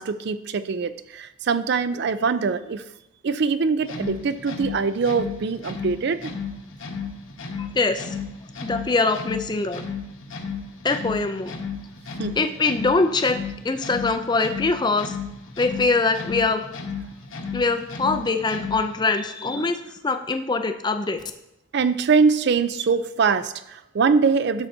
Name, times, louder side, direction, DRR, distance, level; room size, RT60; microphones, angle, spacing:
voice 1, 0.0-2.8 3.2-6.3 12.2-12.4 21.7-24.7, right 5 dB, 50° right, 13 dB, 0.4 m, -23 dB
sound 1, 3.8-19.0, left 5 dB, 80° left, 1.0 m, -34 dB
voice 2, 7.5-8.1 8.6-9.8 10.8-11.5 12.4-13.4 13.6-15.2 15.6-16.6 17.5-21.2, left 3 dB, 20° left, 8 dB, 0.4 m, -23 dB
12.0 x 7.1 x 2.7 m, 0.89 s
head